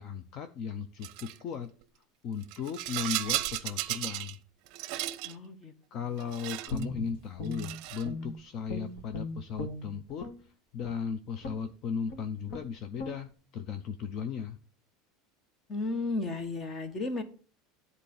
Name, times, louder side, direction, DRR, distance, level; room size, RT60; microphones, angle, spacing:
voice 1, 0.0-1.7 2.2-4.4 5.9-10.3 10.7-14.6, left 6 dB, 40° left, 9 dB, 0.6 m, -36 dB
Rattle, 1.0-1.4 2.4-4.4 4.7-5.3 6.2-6.9 7.5-8.1, right 16 dB, 50° right, 0.7 m, -35 dB
voice 2, 5.2-5.7 15.7-17.2, left 3 dB, 20° left, 10 dB, 1.2 m, -33 dB
Guitar, 6.7-8.4 8.7-10.4 10.8-11.0 11.4-11.7 12.1-12.2 12.5-12.7 13.0-13.2, left 2 dB, 60° left, 2.2 m, -38 dB
10.5 x 4.1 x 7.0 m, 0.39 s
supercardioid pair, 160°, 0 cm